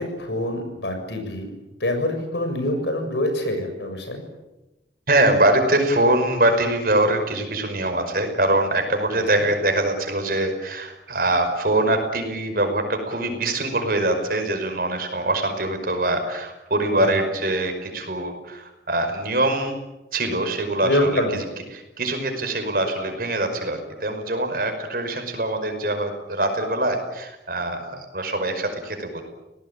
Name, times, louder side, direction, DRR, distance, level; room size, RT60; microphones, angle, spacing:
voice 1, 0.0-1.5 1.8-4.2 9.4-9.5 17.0-17.1 20.8-21.4, left 1 dB, 75° left, 5 dB, 6.9 m, -25 dB
voice 2, 5.1-19.8 20.1-21.1 21.7-29.2, right 1 dB, 50° right, 6 dB, 5.5 m, -23 dB
29.0 x 19.0 x 9.0 m, 1.0 s
head